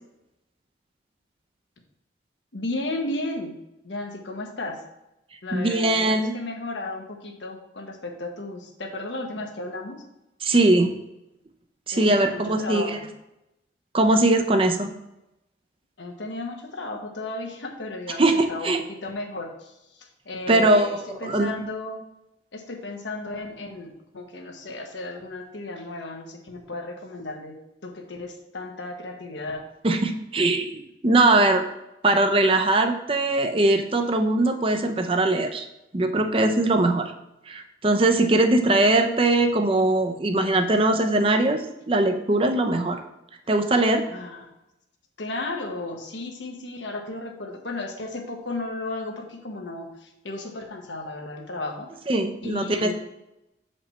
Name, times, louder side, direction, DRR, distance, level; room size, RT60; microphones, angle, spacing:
voice 1, 2.5-3.6 3.8-4.8 5.4-10.0 11.9-13.1 16.0-18.7 19.0-19.7 20.0-22.0 22.5-27.6 27.8-29.6 44.1-44.5 45.2-51.9 52.4-52.9, left 2 dB, 85° left, 3 dB, 1.2 m, -34 dB
voice 2, 5.5-6.3 10.4-11.0 11.9-13.0 13.9-14.9 18.2-18.8 20.5-21.5 29.8-31.6 32.0-35.7 35.9-37.1 37.5-43.0 43.5-44.1 52.1-52.9, right 2 dB, 30° right, 6 dB, 0.6 m, -21 dB
7.1 x 5.1 x 4.2 m, 0.91 s
head